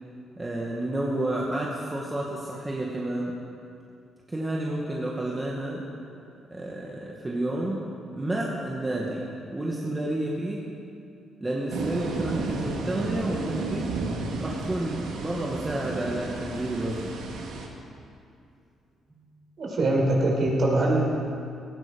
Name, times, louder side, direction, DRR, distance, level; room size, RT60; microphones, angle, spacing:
voice 1, 0.4-3.3 4.3-5.8 6.5-7.8 8.1-10.7 11.4-13.9 14.4-17.1 19.1-19.3, right 1 dB, 20° right, -3 dB, 2.1 m, -30 dB
sound 1, 11.7-17.7, right 3 dB, 90° right, 2.3 m, -32 dB
voice 2, 19.6-21.0, right 2 dB, 50° right, -2 dB, 5.1 m, -23 dB
18.0 x 15.0 x 5.4 m, 2.5 s
cardioid pair, 90°, 0 cm